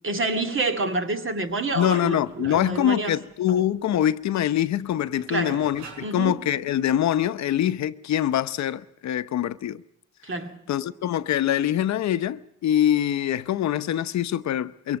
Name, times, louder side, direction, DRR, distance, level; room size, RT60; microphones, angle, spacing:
voice 1, 0.0-3.2 3.5-3.7 5.3-5.7 6.0-6.4 10.2-10.6, right 2 dB, 40° right, 2.4 m, -28 dB
sound 1, 1.1-6.5, right 4 dB, 85° right, 5.1 m, -48 dB
voice 2, 1.7-5.8 6.1-9.8 10.7-15.0, left 11 dB, 65° left, 0.8 m, -24 dB
22.5 x 17.5 x 7.6 m
cardioid pair, 90°, 30 cm